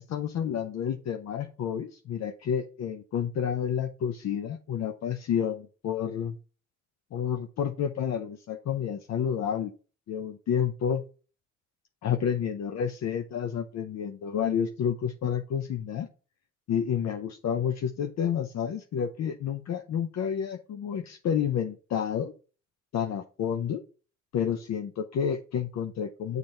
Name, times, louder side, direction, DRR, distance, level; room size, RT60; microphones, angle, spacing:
voice 1, 0.0-6.4 7.1-9.7 10.1-11.0 12.0-16.1 16.7-22.3 22.9-23.8 24.3-26.4, left 8 dB, 60° left, 5 dB, 0.7 m, -30 dB
7.1 x 4.1 x 4.4 m, 0.36 s
cardioid pair, 90°, 30 cm